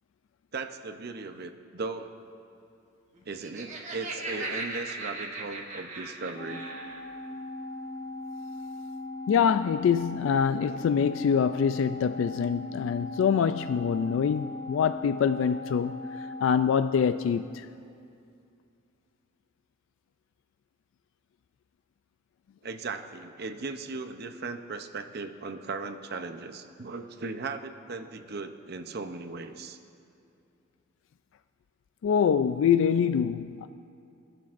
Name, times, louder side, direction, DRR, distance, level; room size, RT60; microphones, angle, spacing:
voice 1, 0.5-2.1 3.3-6.7 10.6-10.8 22.6-29.8, right 4 dB, 55° right, 0.7 m, -37 dB
Laughter, 3.2-7.0, right 3 dB, 40° right, 1.3 m, -38 dB
Organ, 6.3-17.6, left 2 dB, 55° left, 1.4 m, -39 dB
voice 2, 9.3-17.7 32.0-33.7, left 7 dB, 80° left, 0.3 m, -25 dB
26.5 x 11.5 x 2.5 m
head